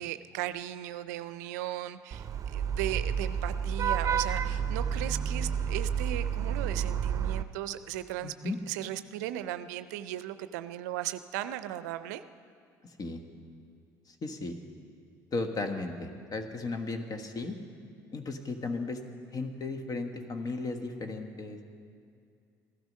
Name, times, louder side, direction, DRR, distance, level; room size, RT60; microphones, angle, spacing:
voice 1, 0.0-12.2, right 13 dB, 80° right, 13 dB, 0.4 m, -37 dB
Vehicle horn car horn honking / Traffic noise roadway noise, 2.1-7.4, right 7 dB, 40° right, 0.6 m, -30 dB
voice 2, 8.2-8.6 12.8-13.2 14.1-14.6 15.3-17.6 18.1-19.0 19.3-21.6, left 3 dB, 45° left, 6 dB, 1.4 m, -35 dB
15.0 x 12.5 x 5.4 m, 2.3 s
hypercardioid pair, 60°, 9 cm